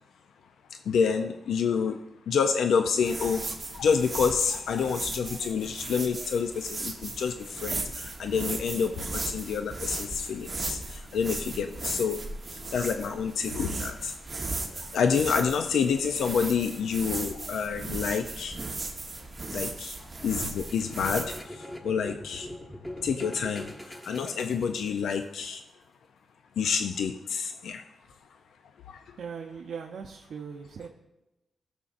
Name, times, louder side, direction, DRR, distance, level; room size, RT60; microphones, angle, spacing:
voice 1, 0.9-2.0 2.3-3.4 3.7-12.2 12.5-14.1 14.8-18.6 19.5-20.0 20.2-22.5 23.0-25.6 26.6-27.8 28.9-29.0, left 6 dB, 85° left, 7 dB, 0.4 m, -28 dB
sound 1, 3.0-21.4, right 3 dB, 25° right, 1.2 m, -37 dB
sound 2, 20.3-25.2, left 1 dB, 10° left, 1.0 m, -43 dB
voice 2, 29.2-30.9, right 6 dB, 65° right, 1 dB, 0.7 m, -39 dB
15.0 x 7.1 x 2.5 m, 0.97 s
wide cardioid pair, 130°, 0 cm